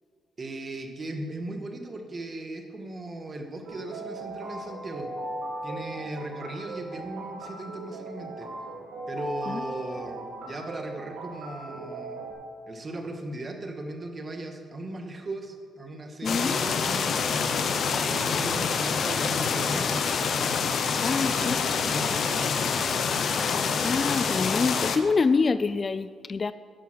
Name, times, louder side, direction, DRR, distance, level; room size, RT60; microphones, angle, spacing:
voice 1, 0.4-5.1 5.6-8.5 9.1-12.2 12.7-17.3 18.0-20.1 21.2-22.5, right 2 dB, 35° right, 4 dB, 1.5 m, -38 dB
sound 1, 3.6-12.3, right 2 dB, 70° right, 2.5 m, -38 dB
sound 2, 16.2-25.0, left 5 dB, 55° left, 0.9 m, -26 dB
voice 2, 16.2-16.6 21.0-21.6 23.8-26.5, left 4 dB, 35° left, 14 dB, 0.3 m, -26 dB
11.0 x 7.1 x 6.2 m, 2.1 s
cardioid pair, 90°, 0 cm